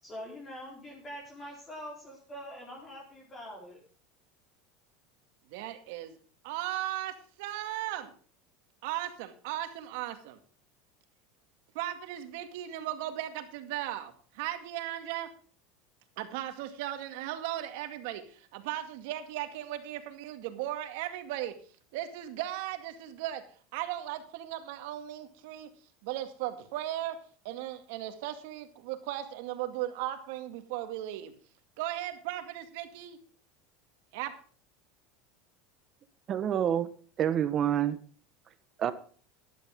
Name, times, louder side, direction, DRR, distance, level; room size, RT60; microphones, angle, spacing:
voice 1, 0.0-3.8, equal, 20° left, -2 dB, 4.1 m, -44 dB
voice 2, 5.5-6.2 6.4-8.1 8.8-10.4 11.7-15.3 16.2-21.5 21.9-23.4 23.7-25.7 26.0-27.2 27.4-31.3 31.8-33.2 34.1-34.3, right 13 dB, 70° right, 8 dB, 2.1 m, -37 dB
voice 3, 36.3-36.9 37.2-38.0 38.8-38.9, right 10 dB, 35° right, 13 dB, 1.3 m, -27 dB
13.0 x 11.5 x 3.7 m, 0.43 s
supercardioid pair, 135°, 0 cm